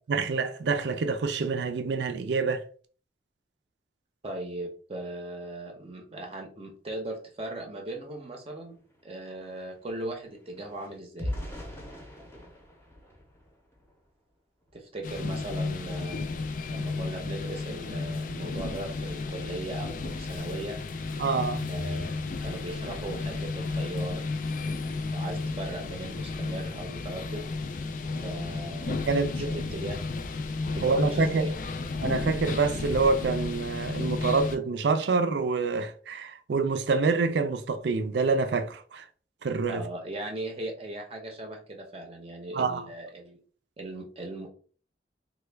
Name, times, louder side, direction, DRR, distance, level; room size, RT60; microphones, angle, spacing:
voice 1, 0.1-2.6 21.2-21.7 28.9-29.6 30.8-31.5 32.0-39.1 39.4-39.8 42.5-42.9, right 4 dB, 75° right, 0.4 m, -27 dB
voice 2, 4.2-8.8 9.0-11.3 14.7-16.2 16.7-20.8 21.7-24.2 24.6-27.4 28.2-30.0 30.7-31.5 39.7-43.4 43.8-44.5, right 1 dB, 35° right, 0.6 m, -38 dB
sound 1, 8.2-8.3 8.6-14.1 14.6-14.8 15.2-15.4, left 1 dB, 15° left, 0.7 m, -41 dB
sound 2, 15.0-34.6, left 3 dB, 50° left, 0.3 m, -33 dB
3.2 x 2.2 x 3.3 m
head